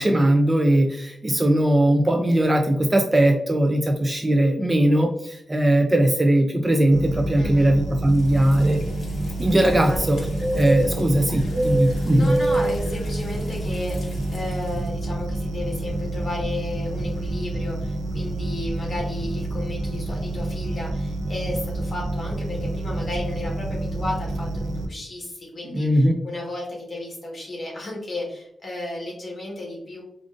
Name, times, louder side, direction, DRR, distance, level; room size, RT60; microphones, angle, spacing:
voice 1, 0.0-8.8 9.4-10.2 10.5-12.4 25.7-26.1, right 1 dB, 20° right, 4 dB, 0.3 m, -19 dB
sound 1, 6.9-24.9, right 1 dB, 85° right, 0.6 m, -29 dB
voice 2, 7.4-7.7 9.9-10.1 12.1-30.0, left 2 dB, 35° left, -3 dB, 1.4 m, -34 dB
sound 2, 8.2-14.8, right 1 dB, 60° left, 0.7 m, -29 dB
5.0 x 2.5 x 2.4 m, 0.75 s
wide cardioid pair, 135°, 0 cm